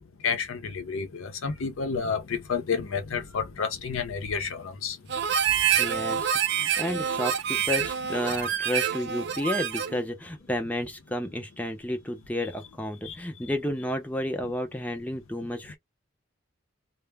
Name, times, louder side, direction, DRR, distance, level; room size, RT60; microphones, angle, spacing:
voice 1, 0.2-5.0 5.9-6.2 13.0-13.2, left 5 dB, 75° left, 0.6 m, -30 dB
Harmonica, 5.1-10.0, right 8 dB, 50° right, 0.4 m, -27 dB
voice 2, 5.8-15.8, left 1 dB, 5° left, 0.5 m, -31 dB
2.1 x 2.0 x 3.3 m
head